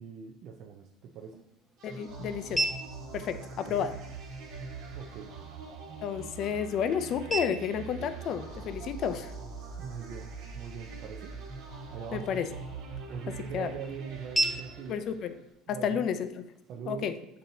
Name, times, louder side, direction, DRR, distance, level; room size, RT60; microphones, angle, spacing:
voice 1, 0.0-1.4 3.7-3.8 4.9-5.3 9.8-10.3 10.5-11.3 11.9-12.2 13.1-15.0 15.7-16.0 16.7-17.1, right 7 dB, 55° right, 1 dB, 0.4 m, -42 dB
sound 1, 0.8-16.8, right 2 dB, 5° left, 0.7 m, -40 dB
voice 2, 1.8-2.7 3.1-4.0 6.0-9.3 12.1-12.5 13.3-13.8 14.9-15.4 15.7-16.4 16.9-17.2, left 8 dB, 50° left, 11 dB, 0.3 m, -31 dB
sound 2, 1.8-15.4, right 4 dB, 70° right, 1.2 m, -43 dB
7.2 x 2.7 x 2.6 m, 0.83 s
supercardioid pair, 125°, 0 cm